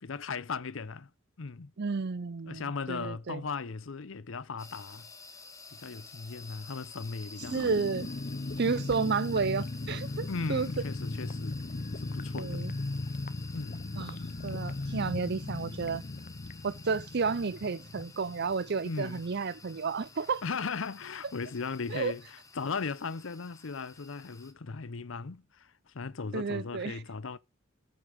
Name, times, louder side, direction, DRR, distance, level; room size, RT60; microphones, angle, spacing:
voice 1, 0.0-1.1 1.4-1.7 2.5-5.1 5.7-7.7 8.6-8.9 10.3-11.7 12.0-12.7 13.5-13.8 18.8-19.2 20.4-27.4, left 4 dB, 75° left, 0.7 m, -37 dB
voice 2, 1.8-3.4 7.5-8.1 8.6-10.7 12.4-12.7 14.0-16.0 16.6-20.4 21.9-22.1 26.3-27.0, right 5 dB, 55° right, 0.6 m, -32 dB
sound 1, 4.6-24.5, left 4 dB, 15° left, 1.4 m, -51 dB
sound 2, 7.4-19.8 20.0-20.1 20.4-20.7, left 2 dB, 45° left, 0.7 m, -38 dB
14.0 x 5.9 x 4.9 m
head